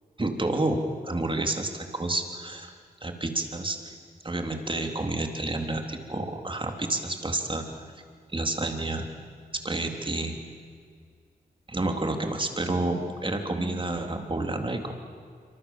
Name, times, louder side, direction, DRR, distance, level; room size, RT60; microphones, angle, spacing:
voice 1, 0.2-2.7 3.0-3.8 4.2-7.6 8.3-9.1 9.6-10.4 11.7-14.9, right 2 dB, 30° right, 4 dB, 3.5 m, -29 dB
26.5 x 25.5 x 7.5 m, 2.1 s
wide cardioid pair, 70°, 16 cm